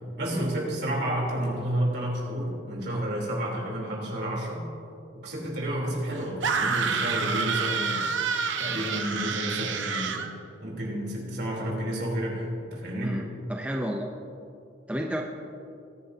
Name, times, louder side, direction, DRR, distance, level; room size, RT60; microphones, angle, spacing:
voice 1, 0.2-4.7 5.1-8.1 8.6-10.2 10.6-13.2, right 1 dB, 55° right, -3 dB, 3.3 m, -30 dB
sound 1, 6.4-10.3, right 5 dB, 70° right, 0.9 m, -28 dB
voice 2, 13.5-14.1 14.9-15.2, equal, 5° right, 1 dB, 0.5 m, -31 dB
21.0 x 10.5 x 2.7 m, 2.7 s
head